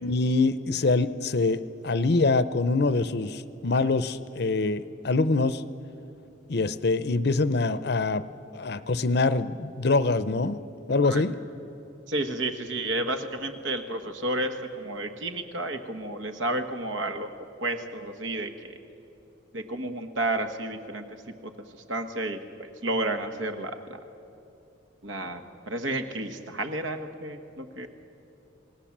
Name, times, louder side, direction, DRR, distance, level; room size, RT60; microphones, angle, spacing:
voice 1, 0.0-5.6 6.5-8.2 8.5-10.6 10.9-11.3, left 3 dB, 55° left, 14 dB, 0.7 m, -24 dB
voice 2, 12.1-17.3 17.6-18.8 19.5-21.0 21.4-21.5 21.9-23.8 25.0-27.9, right 2 dB, 75° right, 7 dB, 1.5 m, -31 dB
27.0 x 18.5 x 7.4 m, 3.0 s
head